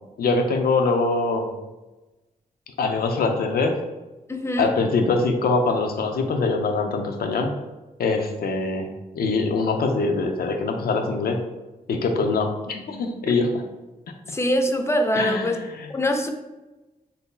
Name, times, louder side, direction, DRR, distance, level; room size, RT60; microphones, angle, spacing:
voice 1, 0.2-1.5 2.8-3.8 4.6-7.5 8.0-8.9 9.1-11.4 11.9-13.6 15.2-15.9, left 3 dB, 85° left, 4 dB, 0.4 m, -23 dB
voice 2, 4.3-4.7 14.3-15.6 15.9-16.3, equal, 15° left, 5 dB, 0.4 m, -23 dB
2.6 x 2.2 x 3.7 m, 1.1 s
cardioid pair, 80°, 15 cm